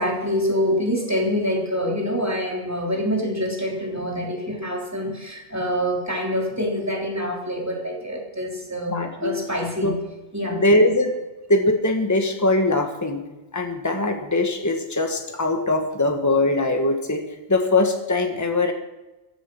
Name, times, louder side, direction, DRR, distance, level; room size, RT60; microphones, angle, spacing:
voice 1, 0.0-10.0 10.3-10.6, equal, 15° right, -1 dB, 3.3 m, -26 dB
voice 2, 8.9-9.3 9.8-9.9 10.6-11.1 11.5-13.2 13.5-17.2 17.5-18.7, left 2 dB, 15° left, 4 dB, 1.5 m, -21 dB
15.0 x 11.5 x 6.1 m, 1.1 s
omnidirectional pair, 1.2 m